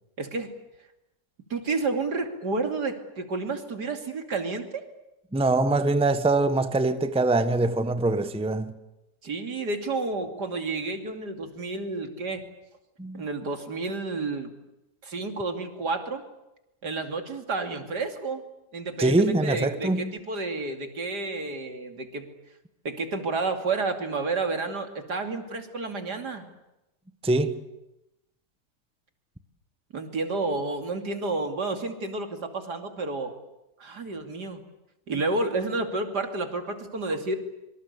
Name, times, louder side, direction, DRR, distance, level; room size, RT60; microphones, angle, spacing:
voice 1, 0.2-0.5 1.5-4.8 9.2-12.4 13.1-14.5 15.0-16.2 16.8-18.4 18.7-19.2 19.4-22.3 22.8-26.5 29.9-33.3 33.8-34.6 35.1-37.4, right 3 dB, 80° right, 3.3 m, -30 dB
voice 2, 5.3-8.7 13.0-13.3 19.0-20.1 27.2-27.6, right 2 dB, 5° right, 1.0 m, -23 dB
26.0 x 24.5 x 8.3 m
omnidirectional pair, 1.8 m